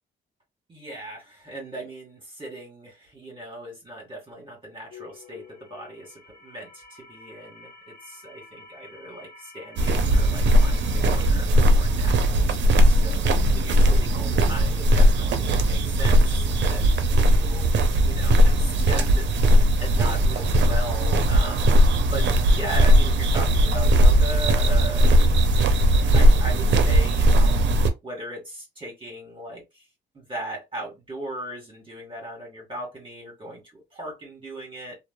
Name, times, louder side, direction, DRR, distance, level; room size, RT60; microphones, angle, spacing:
voice 1, 0.7-13.2 13.5-17.7 18.0-22.3 22.5-25.3 26.1-27.6 28.0-29.8 30.1-35.0, right 1 dB, 25° right, 1.2 m, -38 dB
sound 1, 4.9-11.3, left 3 dB, 30° left, 1.2 m, -48 dB
sound 2, 9.8-27.9, equal, 65° right, 0.5 m, -19 dB
2.9 x 2.1 x 2.2 m
cardioid pair, 90°, 20 cm